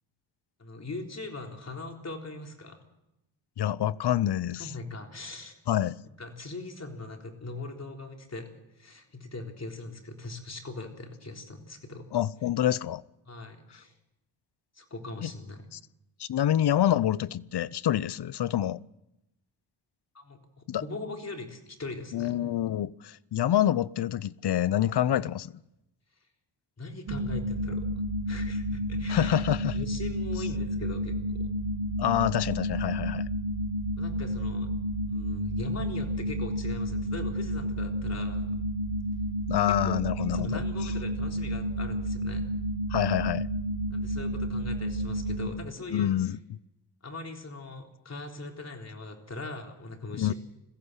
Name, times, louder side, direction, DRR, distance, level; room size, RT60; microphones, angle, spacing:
voice 1, 0.6-2.8 4.6-5.5 6.2-8.5 8.8-12.1 13.3-13.9 14.7-15.6 20.1-20.4 20.8-22.4 25.1-25.2 26.8-27.9 28.3-29.4 29.7-31.5 34.0-34.7 35.1-38.6 39.8-40.0 40.3-42.5 43.9-46.1 47.0-50.3, left 3 dB, 35° left, 3.8 m, -40 dB
voice 2, 3.6-4.7 5.7-6.0 12.1-13.0 15.2-15.3 16.2-18.8 20.7-20.8 22.1-25.5 29.1-29.8 32.0-33.2 39.5-40.6 42.9-43.5 45.9-46.4 50.2-50.3, left 11 dB, 60° left, 0.7 m, -27 dB
sound 1, 27.1-45.5, equal, 80° right, 3.1 m, -31 dB
21.5 x 15.5 x 8.1 m
cardioid pair, 85°, 46 cm